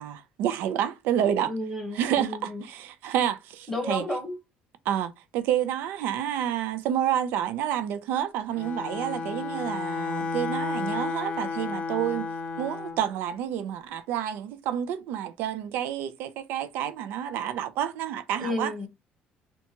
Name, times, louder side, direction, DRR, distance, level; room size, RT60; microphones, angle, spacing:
voice 1, 0.0-1.5 1.9-4.0 4.9-12.3 12.6-18.7, right 10 dB, 75° right, 0.4 m, -29 dB
voice 2, 1.5-2.6 3.7-4.4 18.4-18.9, left 1 dB, 5° left, 0.8 m, -32 dB
Bowed string instrument, 8.5-13.0, left 4 dB, 40° left, 0.5 m, -32 dB
2.8 x 2.2 x 2.7 m
cardioid pair, 165°, 3 cm